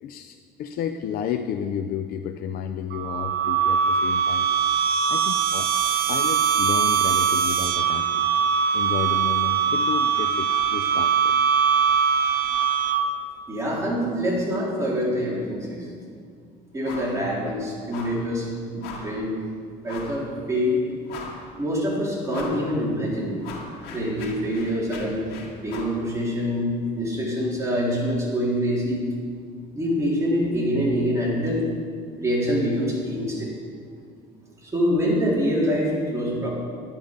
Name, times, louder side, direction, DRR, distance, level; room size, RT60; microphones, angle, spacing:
voice 1, 0.0-4.5 5.1-5.7 6.1-8.3 8.7-11.3, left 8 dB, 60° left, 7 dB, 0.5 m, -31 dB
sound 1, 2.9-13.3, right 7 dB, 70° right, 0.8 m, -22 dB
voice 2, 13.5-15.9 16.7-18.5 18.7-19.4 19.8-20.8 21.6-23.4 23.9-25.2 25.6-29.0 29.7-31.6 32.2-33.5 34.6-36.5, equal, 20° right, -5 dB, 3.4 m, -25 dB
sound 2, 16.8-17.2 17.5-17.6 17.9-18.3 18.8-19.2 19.9-20.2 20.7-20.8 21.1-21.6 22.3-22.7 23.0-26.0, left 4 dB, 80° left, 2.0 m, -39 dB
10.5 x 10.5 x 5.2 m, 2.2 s
cardioid pair, 120°, 17 cm